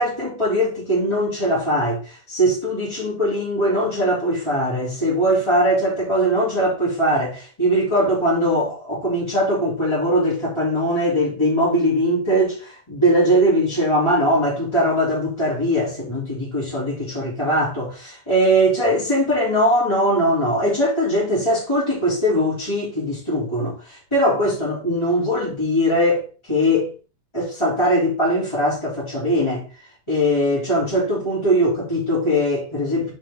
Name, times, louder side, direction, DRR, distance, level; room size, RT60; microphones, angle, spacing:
voice 1, 0.0-26.9 27.3-29.7 30.1-33.1, equal, 10° left, 2.0 m, -20 dB
10.0 x 4.6 x 3.8 m
omnidirectional pair, 5.8 m